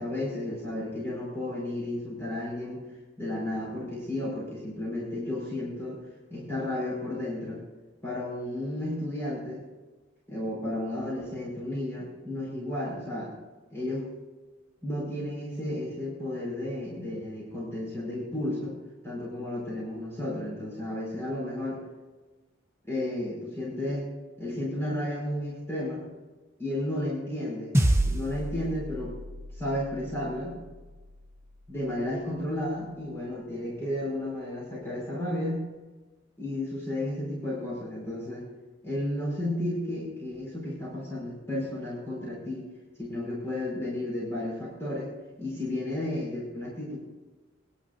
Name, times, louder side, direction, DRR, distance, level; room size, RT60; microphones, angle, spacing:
voice 1, 0.0-2.8 3.2-6.0 6.3-7.6 8.0-9.6 10.3-13.3 13.7-14.1 14.8-18.8 19.0-21.8 22.9-24.1 24.4-26.1 26.6-29.2 29.6-30.6 31.7-35.7 36.4-38.5 38.8-42.7 43.0-45.1 45.4-47.0, left 1 dB, 15° left, -7 dB, 5.2 m, -33 dB
sound 1, 27.7-32.3, right 1 dB, 15° right, 1.0 m, -30 dB
22.5 x 12.0 x 2.7 m, 1.2 s
head